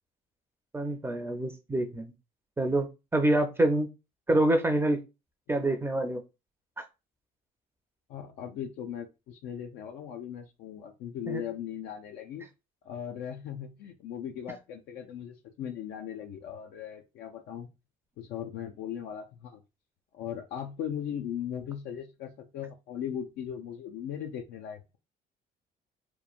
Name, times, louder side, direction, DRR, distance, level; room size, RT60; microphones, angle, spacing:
voice 1, 0.7-2.1 2.6-2.9 3.1-3.9 4.3-5.0 5.5-6.2 6.8-6.9 11.3-11.4, right 1 dB, 15° right, 6 dB, 0.4 m, -26 dB
voice 2, 8.1-12.5 12.8-17.7 18.2-19.6 20.1-24.8, left 9 dB, 80° left, 3 dB, 0.4 m, -38 dB
3.0 x 2.1 x 2.4 m, 0.26 s
cardioid pair, 110°, 17 cm